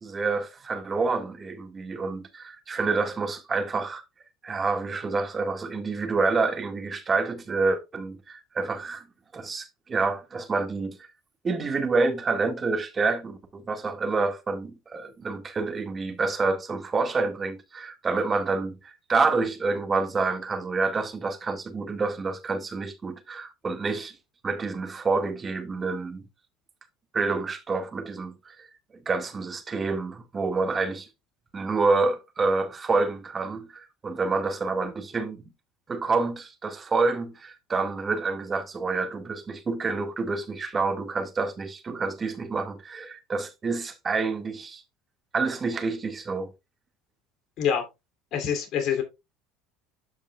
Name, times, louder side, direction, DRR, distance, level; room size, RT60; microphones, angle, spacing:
voice 1, 0.0-4.0 4.4-9.1 9.3-11.0 11.4-24.1 24.4-26.2 27.1-28.7 29.1-31.1 31.5-35.5 35.9-44.8 45.3-46.5, right 4 dB, 30° right, 1.9 m, -28 dB
voice 2, 48.3-49.0, left 8 dB, 55° left, 3.0 m, -25 dB
13.5 x 5.4 x 2.4 m
supercardioid pair, 90°, 0 cm